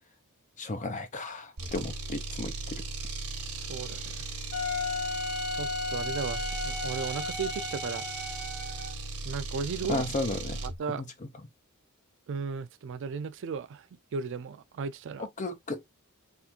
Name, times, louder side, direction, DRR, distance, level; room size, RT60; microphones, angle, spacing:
voice 1, 0.6-2.8 9.9-10.6 10.9-11.1 15.4-15.8, left 2 dB, 35° left, 0.7 m, -34 dB
sound 1, 1.6-10.8, right 3 dB, 85° right, 1.1 m, -37 dB
voice 2, 3.7-4.3 5.5-8.1 9.3-10.0 10.6-11.0 12.3-13.9 14.1-15.3, right 5 dB, 60° right, 0.4 m, -35 dB
Wind instrument woodwind instrument, 4.5-9.0, left 3 dB, 85° left, 1.6 m, -34 dB
3.6 x 2.5 x 2.8 m
head